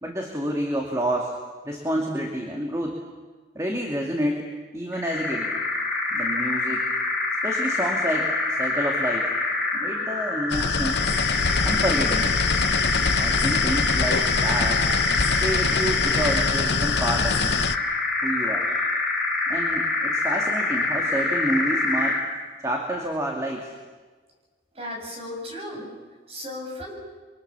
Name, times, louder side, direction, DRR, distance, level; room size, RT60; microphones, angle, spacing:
voice 1, 0.0-1.4 1.6-3.0 3.5-5.5 6.1-6.9 7.4-9.3 9.7-11.0 11.6-12.3 13.2-14.9 15.4-17.6 18.2-18.8 19.5-22.2 22.6-23.7, right 1 dB, 15° right, 1 dB, 2.3 m, -29 dB
sound 1, 4.9-22.3, left 2 dB, ahead, 4.6 m, -25 dB
sound 2, 10.5-17.8, left 5 dB, 70° left, 0.8 m, -25 dB
voice 2, 24.7-25.9 26.3-26.9, left 1 dB, 35° right, 0 dB, 7.3 m, -35 dB
30.0 x 23.5 x 7.0 m, 1.4 s
head